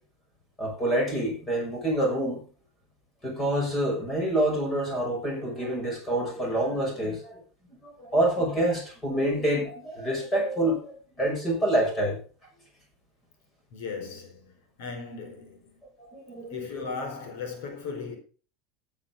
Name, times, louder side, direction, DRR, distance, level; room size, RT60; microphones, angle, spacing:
voice 1, 0.6-2.4 3.2-7.4 7.8-12.2 16.1-16.7, right 1 dB, 15° left, 6.3 m, -27 dB
voice 2, 13.7-15.7 16.5-18.2, left 5 dB, 70° left, 4.3 m, -37 dB
16.0 x 9.5 x 3.8 m
supercardioid pair, 170°, 0 cm